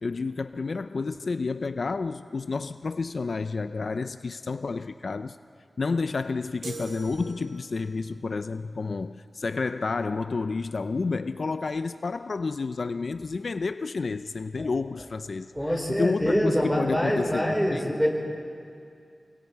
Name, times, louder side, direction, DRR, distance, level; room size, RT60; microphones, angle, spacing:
voice 1, 0.0-5.4 5.8-17.5 17.7-18.0, left 4 dB, 60° left, 0.5 m, -30 dB
sound 1, 6.6-8.0, right 4 dB, 85° right, 2.0 m, -41 dB
voice 2, 15.5-18.1, equal, 5° right, 4.8 m, -25 dB
29.0 x 22.5 x 4.7 m
wide cardioid pair, 95°, 0 cm